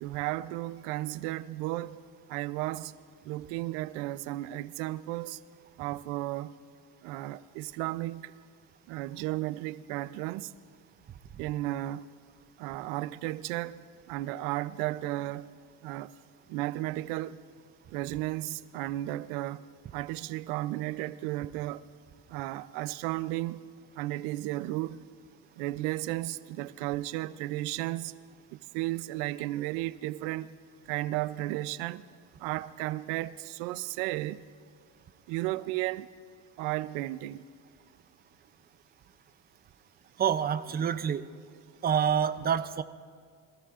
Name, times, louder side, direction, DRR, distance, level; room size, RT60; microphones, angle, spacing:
voice 1, 0.0-2.0 2.3-2.9 3.3-5.4 5.8-6.6 7.0-8.3 8.9-10.5 11.4-12.1 12.6-15.5 15.8-16.1 16.5-17.4 17.9-19.6 19.9-21.8 22.3-23.6 23.9-25.0 25.6-28.1 28.5-30.6 30.9-32.0 32.4-34.5 35.3-36.1 36.6-37.4, right 16 dB, 90° right, 0.6 m, -34 dB
voice 2, 40.2-41.2 41.8-42.8, right 8 dB, 20° right, 0.4 m, -27 dB
24.5 x 16.0 x 2.5 m
cardioid pair, 120°, 45 cm